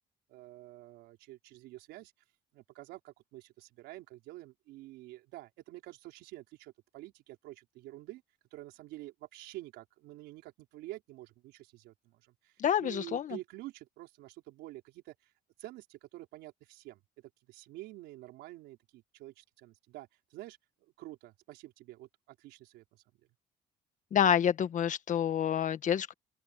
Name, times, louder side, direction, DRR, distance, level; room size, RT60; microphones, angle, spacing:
voice 1, 0.3-2.1 2.5-8.2 8.5-15.1 15.6-20.6 21.0-23.0, right 17 dB, 90° right, 4.7 m, -48 dB
voice 2, 12.6-13.4 24.1-26.1, left 9 dB, 50° left, 1.5 m, -28 dB
open air
cardioid pair, 110°, 17 cm